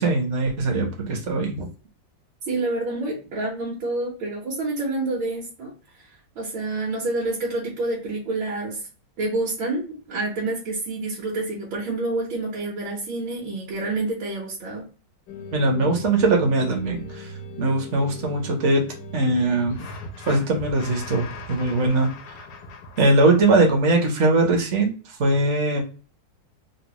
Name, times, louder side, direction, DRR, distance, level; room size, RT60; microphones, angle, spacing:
voice 1, 0.0-1.7 15.5-17.3 17.6-18.8 19.1-19.8 20.3-22.1 23.0-25.8, right 2 dB, 55° right, 1 dB, 0.8 m, -21 dB
voice 2, 2.5-5.7 6.4-8.8 9.2-14.9, right 2 dB, 80° right, -4 dB, 1.7 m, -28 dB
sound 1, 15.3-23.7, left 1 dB, 70° left, 1.0 m, -38 dB
3.9 x 2.0 x 2.9 m, 0.36 s
omnidirectional pair, 2.1 m